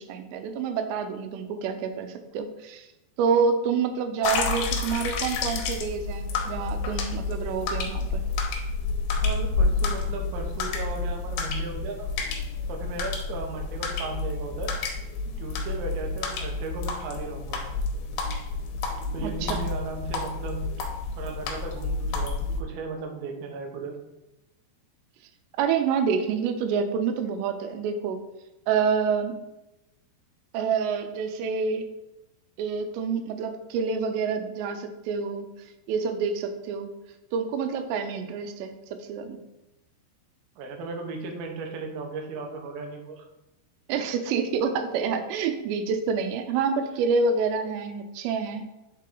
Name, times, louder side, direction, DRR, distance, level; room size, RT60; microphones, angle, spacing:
voice 1, 0.0-2.9 3.2-8.2 19.2-19.7 25.6-28.2 28.7-29.3 30.5-31.9 32.6-35.5 35.9-36.9 37.3-39.4 43.9-48.7, right 5 dB, 90° right, 7 dB, 2.8 m, -27 dB
sound 1, 4.2-22.6, left 3 dB, 75° left, 2.6 m, -29 dB
voice 2, 9.2-12.1 12.7-14.7 15.4-17.8 19.1-20.6 21.1-24.0 40.6-43.2, right 3 dB, 75° right, 2 dB, 2.6 m, -36 dB
8.6 x 3.7 x 3.8 m, 0.95 s
omnidirectional pair, 4.9 m